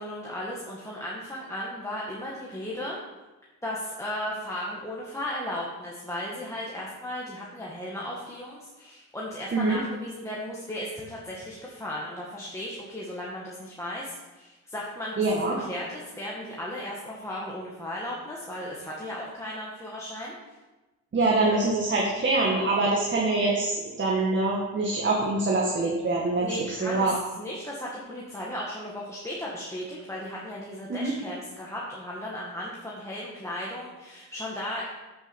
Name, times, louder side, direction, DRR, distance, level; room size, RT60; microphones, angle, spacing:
voice 1, 0.0-3.0 3.6-20.3 26.4-34.9, left 1 dB, 10° left, -5 dB, 2.0 m, -36 dB
voice 2, 15.2-15.5 21.1-26.5 26.8-27.1 30.9-31.1, right 2 dB, 40° right, -3 dB, 2.1 m, -24 dB
8.0 x 7.4 x 6.2 m, 1.1 s
cardioid pair, 90°, 30 cm